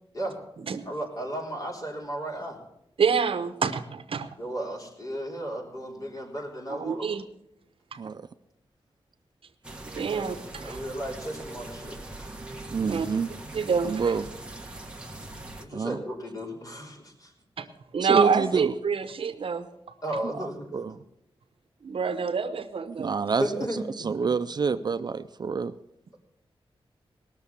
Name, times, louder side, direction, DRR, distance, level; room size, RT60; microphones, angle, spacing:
voice 1, 0.9-2.6 4.4-7.1 10.1-12.0 15.6-17.3 20.0-20.7 22.1-22.2 23.4-23.8, right 1 dB, 35° left, -1 dB, 3.6 m, -34 dB
voice 2, 3.0-4.3 6.8-7.2 9.9-10.8 12.8-13.1 13.5-14.1 17.6-17.7 17.9-19.7 21.8-23.5, right 6 dB, 70° right, 10 dB, 0.9 m, -27 dB
voice 3, 8.0-8.3 12.7-13.3 13.8-14.3 15.7-16.0 18.0-18.7 20.4-20.9 23.0-23.4 23.7-25.7, right 5 dB, 45° right, 11 dB, 0.4 m, -27 dB
sound 1, 9.6-15.6, right 2 dB, 10° right, 1.2 m, -41 dB
19.0 x 6.6 x 7.2 m, 0.81 s
wide cardioid pair, 135°, 10 cm